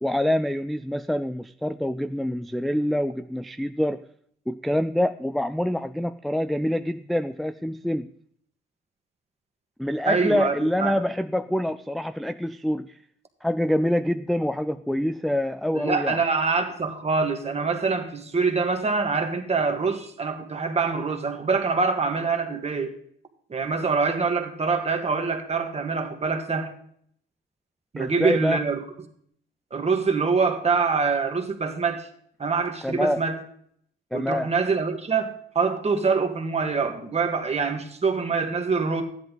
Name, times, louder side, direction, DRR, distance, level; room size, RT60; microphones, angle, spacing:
voice 1, 0.0-4.0 4.5-8.1 9.8-12.9 13.4-16.2 28.0-28.6 32.8-33.2 34.1-34.5, left 1 dB, ahead, 0.4 m, -26 dB
voice 2, 10.1-11.0 15.7-23.0 23.5-26.7 27.9-28.8 29.7-32.1 32.4-33.4 34.1-39.0, right 4 dB, 30° right, 1.8 m, -25 dB
13.0 x 10.5 x 3.9 m
cardioid pair, 90°, 20 cm